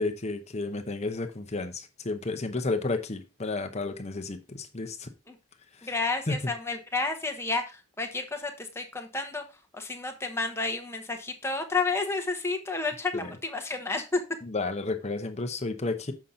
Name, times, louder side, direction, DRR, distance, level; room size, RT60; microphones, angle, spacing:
voice 1, 0.0-5.1 5.8-5.9 6.3-6.5 13.1-13.3 14.4-16.1, left 3 dB, 30° left, 0.8 m, -32 dB
voice 2, 5.8-9.4 9.7-14.2, left 3 dB, 10° left, 1.1 m, -31 dB
7.3 x 5.7 x 3.7 m
head